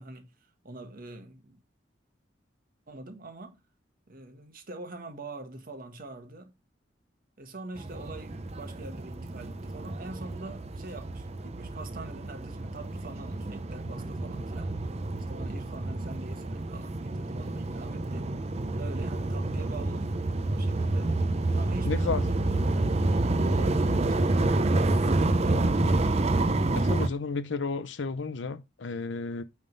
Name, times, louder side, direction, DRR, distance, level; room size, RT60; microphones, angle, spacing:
voice 1, 0.0-1.6 2.9-3.6 4.1-6.5 7.4-14.8 15.2-18.3 18.8-21.2 21.6-26.0, right 2 dB, 50° right, 1.5 m, -44 dB
sound 1, 7.8-27.1, right 2 dB, 35° right, 0.7 m, -28 dB
voice 2, 21.9-22.2 26.7-29.4, left 4 dB, 75° left, 0.6 m, -32 dB
9.0 x 3.6 x 5.3 m
head